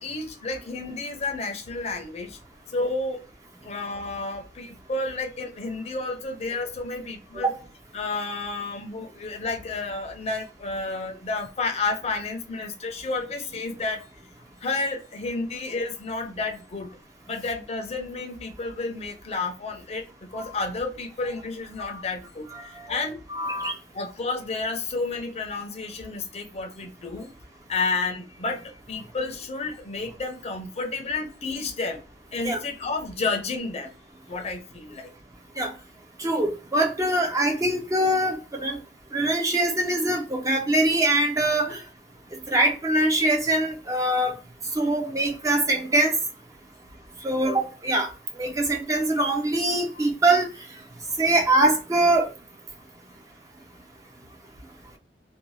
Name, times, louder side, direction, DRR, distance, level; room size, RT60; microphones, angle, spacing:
voice 1, 0.0-2.4 2.7-3.2 3.6-7.5 7.9-14.1 14.6-16.9 17.3-23.2 23.9-27.3 27.7-32.0 32.3-33.9 34.3-35.1 50.0-50.1, left 3 dB, 40° left, 0.5 m, -31 dB
voice 2, 23.4-23.7 32.4-32.6 35.6-35.7 36.2-38.8 39.1-41.8 42.5-44.4 44.7-46.1 47.2-48.1 48.4-50.5 51.2-52.3, right 1 dB, 20° right, 0.4 m, -23 dB
2.6 x 2.1 x 3.1 m
head